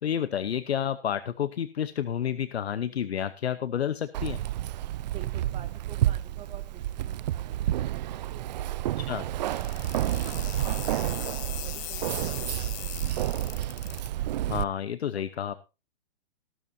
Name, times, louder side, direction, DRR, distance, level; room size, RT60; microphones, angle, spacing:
voice 1, 0.0-4.4 9.0-9.2 14.5-15.6, left 9 dB, 80° left, 14 dB, 1.0 m, -30 dB
Keys jangling, 4.1-14.6, right 13 dB, 45° right, 0.5 m, -30 dB
voice 2, 5.0-11.2 11.6-14.0, right 9 dB, 20° right, 7 dB, 1.9 m, -50 dB
sound 1, 9.5-14.1, left 15 dB, 25° left, 1.2 m, -39 dB
16.0 x 12.5 x 2.7 m, 0.29 s
hypercardioid pair, 140°, 31 cm